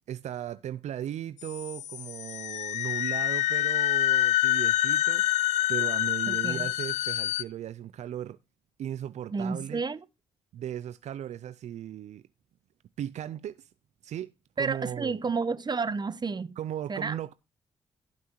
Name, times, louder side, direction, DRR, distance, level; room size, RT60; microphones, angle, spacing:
voice 1, 0.1-8.4 8.8-9.8 10.5-12.2 13.0-13.7 14.0-15.2 16.6-17.3, right 11 dB, 75° right, 0.4 m, -37 dB
sound 1, 1.4-7.4, left 14 dB, 80° left, 0.5 m, -27 dB
voice 2, 6.3-6.7 9.3-10.0 14.6-16.6 16.9-17.2, right 4 dB, 35° right, 0.9 m, -31 dB
17.0 x 5.9 x 3.0 m
supercardioid pair, 50°, 12 cm